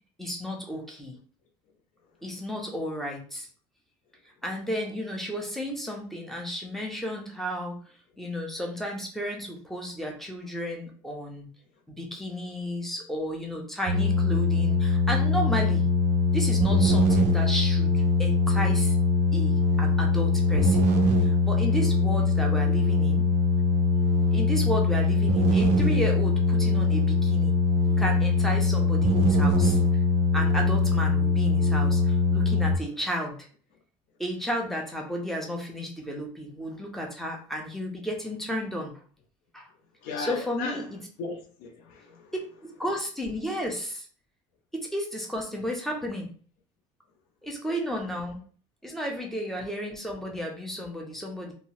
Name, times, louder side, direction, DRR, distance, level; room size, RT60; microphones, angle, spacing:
voice 1, 0.2-1.2 2.2-3.5 4.4-7.8 8.2-11.5 11.9-15.9 16.3-19.0 19.3-20.9 21.2-23.3 24.3-27.5 28.0-29.8 30.3-33.5 34.2-38.9 39.5-39.7 40.2-41.0 42.6-44.1 44.7-46.3 47.4-48.4 48.8-51.5, equal, ahead, 0.4 m, -33 dB
sound 1, 13.9-32.7, left 2 dB, 60° right, 0.4 m, -22 dB
voice 2, 40.0-40.9 41.2-42.3, left 3 dB, 75° left, 0.5 m, -36 dB
2.7 x 2.0 x 2.8 m
cardioid pair, 165°, 15 cm